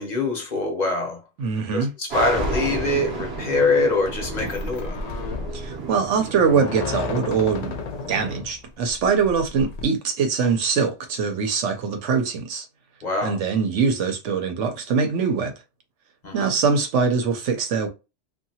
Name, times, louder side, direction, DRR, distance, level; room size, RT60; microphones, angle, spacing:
voice 1, 0.0-1.2 1.7-5.0 13.0-13.4 16.2-16.5, left 3 dB, 40° left, 0.9 m, -24 dB
voice 2, 1.4-1.9 5.5-7.8 8.1-12.7 13.2-15.5 16.3-17.9, right 5 dB, 85° right, 1.1 m, -23 dB
sound 1, 2.1-8.4, right 3 dB, 60° right, 1.0 m, -33 dB
sound 2, 2.3-9.8, left 3 dB, 65° left, 0.4 m, -33 dB
2.7 x 2.6 x 2.8 m
omnidirectional pair, 1.2 m